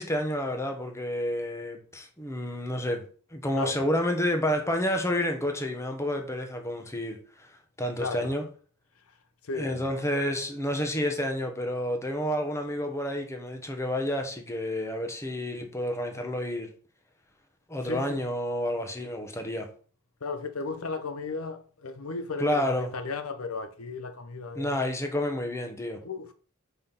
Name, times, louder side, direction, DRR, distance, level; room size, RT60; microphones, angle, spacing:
voice 1, 0.0-3.0 3.3-7.2 7.8-8.4 9.6-16.7 17.7-19.7 22.4-22.9 24.5-26.0, left 1 dB, 15° left, 1.1 m, -29 dB
voice 2, 8.0-8.4 9.4-9.9 17.8-18.2 20.2-24.8 26.0-26.3, left 4 dB, 85° left, 0.8 m, -35 dB
5.5 x 4.3 x 5.7 m
head